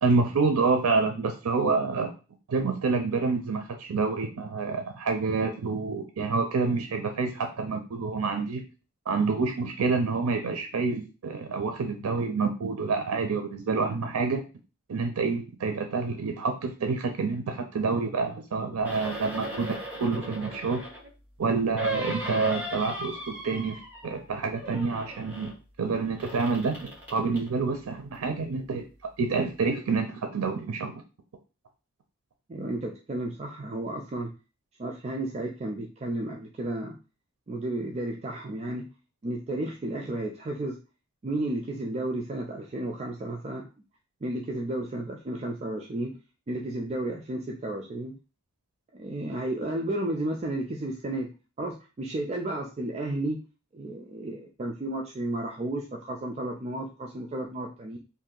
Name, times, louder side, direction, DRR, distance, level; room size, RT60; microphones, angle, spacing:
voice 1, 0.0-2.1 2.5-8.6 9.1-14.4 14.9-20.8 21.4-25.5 25.8-28.8 29.2-30.9, right 4 dB, 90° right, 5 dB, 0.5 m, -28 dB
sound 1, 18.8-21.1 21.8-24.2 24.5-25.5 26.2-27.5 28.1-28.2, right 1 dB, 10° right, 1.2 m, -37 dB
voice 2, 32.5-34.3 34.8-37.0 37.5-38.9 39.2-40.8 41.2-43.6 44.2-46.1 46.5-48.1 48.9-51.3 51.6-53.4 53.7-58.0, right 1 dB, 30° right, 0 dB, 0.4 m, -32 dB
2.7 x 2.5 x 3.7 m, 0.32 s
head